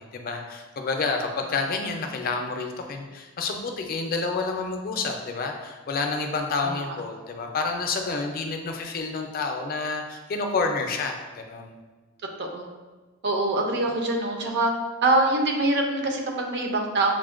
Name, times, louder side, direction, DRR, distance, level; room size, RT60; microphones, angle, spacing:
voice 1, 0.0-11.7, left 4 dB, 45° left, 3 dB, 0.4 m, -29 dB
voice 2, 13.2-14.7 15.0-17.1, right 2 dB, 55° right, 2 dB, 0.5 m, -24 dB
6.1 x 2.1 x 2.4 m, 1.3 s
head